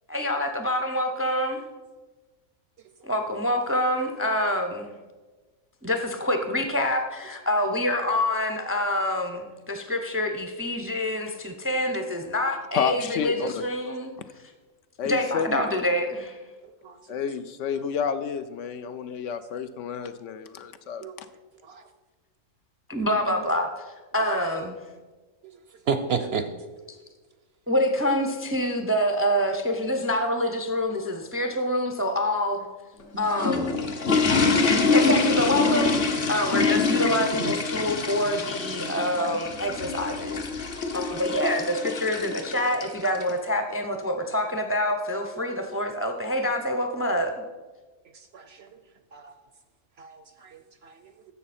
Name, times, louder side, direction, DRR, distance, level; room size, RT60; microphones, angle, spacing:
voice 1, 0.1-1.6 3.0-4.9 5.8-14.2 15.0-16.4 22.9-24.8 27.7-32.7 33.2-33.8 34.9-40.5 40.9-47.4, left 1 dB, 20° right, 5 dB, 0.4 m, -26 dB
voice 2, 12.7-13.6 15.0-15.7 17.1-21.1, left 7 dB, 70° left, 10 dB, 0.9 m, -30 dB
voice 3, 25.9-26.5 34.6-34.7 45.5-45.6 48.3-48.8 49.1-49.3 50.0-51.1, right 6 dB, 65° right, 9 dB, 0.7 m, -32 dB
sound 1, 33.0-43.3, left 4 dB, 45° left, 1.1 m, -25 dB
11.0 x 7.3 x 4.2 m, 1.3 s
omnidirectional pair, 1.4 m